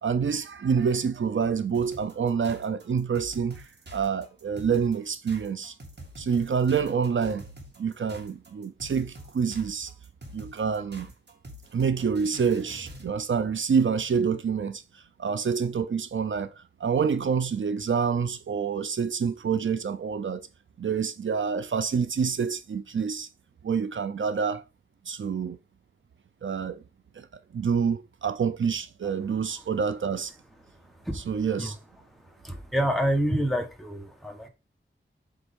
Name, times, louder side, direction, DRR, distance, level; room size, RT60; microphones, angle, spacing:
voice 1, 0.0-5.7 6.2-7.5 7.8-9.9 10.3-11.1 11.7-20.5 20.8-23.3 23.6-24.6 25.1-25.6 26.4-26.8 27.1-27.3 27.5-30.3 31.1-31.8, right 6 dB, 75° right, 0.6 m, -27 dB
sound 1, 1.7-13.1, equal, 60° right, 2.5 m, -46 dB
voice 2, 32.4-34.5, equal, ahead, 1.5 m, -27 dB
8.0 x 3.6 x 5.3 m
wide cardioid pair, 100°, 20 cm